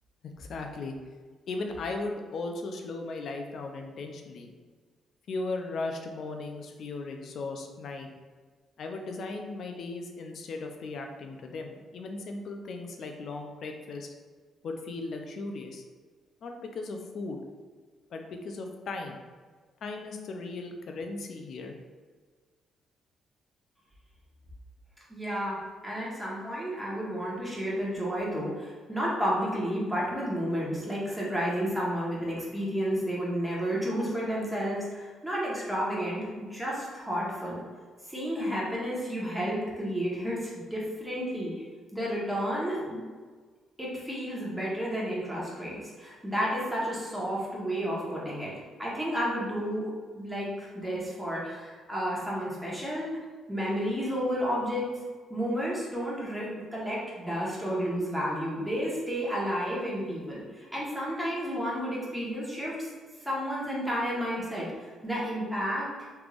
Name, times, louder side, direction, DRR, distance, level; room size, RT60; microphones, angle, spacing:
voice 1, 0.4-1.0 1.5-4.5 5.3-8.1 8.8-14.1 14.6-15.8 16.4-17.5 18.1-19.2 19.8-21.8, left 3 dB, 60° left, 3 dB, 0.4 m, -37 dB
voice 2, 25.1-37.6 38.0-41.7 41.9-43.0 43.8-48.5 48.8-53.1 53.5-54.9 55.3-62.9 63.2-65.9, equal, 5° right, -6 dB, 1.2 m, -31 dB
3.4 x 3.2 x 2.4 m, 1.5 s
cardioid pair, 90°, 0 cm